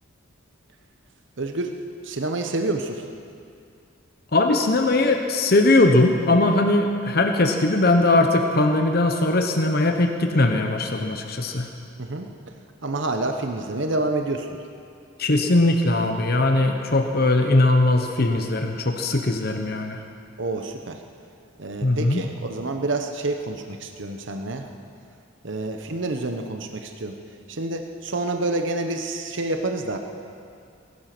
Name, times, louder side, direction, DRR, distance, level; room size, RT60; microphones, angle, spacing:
voice 1, 1.4-1.7 2.0-3.0 12.0-12.3 12.8-14.5 20.4-21.0 21.6-24.6 25.4-27.2 27.5-30.0, right 2 dB, 60° right, 5 dB, 1.0 m, -28 dB
voice 2, 4.3-11.7 15.2-20.0 21.8-22.2, left 2 dB, 50° left, 4 dB, 1.0 m, -20 dB
21.0 x 11.5 x 6.0 m, 2.5 s
head